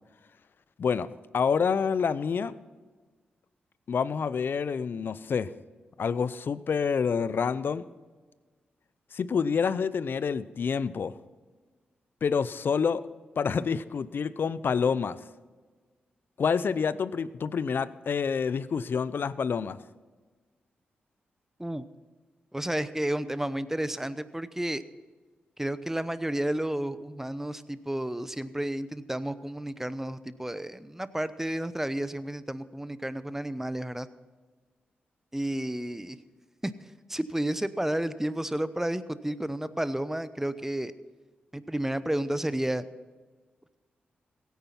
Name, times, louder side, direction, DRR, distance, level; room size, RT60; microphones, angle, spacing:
voice 1, 0.8-2.5 3.9-5.5 6.0-7.8 9.1-11.1 12.2-13.0 13.4-15.2 16.4-19.8, left 6 dB, 65° left, 16 dB, 0.6 m, -28 dB
voice 2, 22.5-24.8 25.6-34.1 35.3-36.2 36.6-36.7 37.1-40.9 41.5-42.8, right 1 dB, 10° right, 14 dB, 0.8 m, -31 dB
16.5 x 9.4 x 5.8 m, 1.4 s
supercardioid pair, 50°, 4 cm